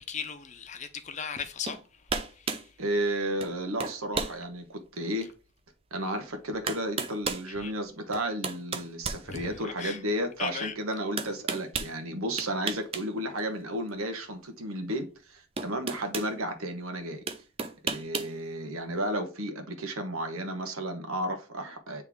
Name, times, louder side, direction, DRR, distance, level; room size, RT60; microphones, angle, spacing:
voice 1, 0.0-1.8 2.5-2.6 7.6-7.7 9.3-10.0 10.4-10.7, left 6 dB, 35° left, 0.6 m, -37 dB
sound 1, 1.7-1.8 2.1-2.7 3.4-3.5 3.8-4.4 5.0-5.1 6.1-6.2 6.7-7.5 8.1-9.8 11.2-11.9 12.4-13.1 13.4-13.5 14.9-15.0 15.6-16.3 17.3-18.3, right 4 dB, 25° right, 0.5 m, -33 dB
voice 2, 2.8-5.3 5.9-17.2 17.8-22.0, right 1 dB, 85° right, 1.2 m, -33 dB
8.1 x 3.3 x 3.6 m
head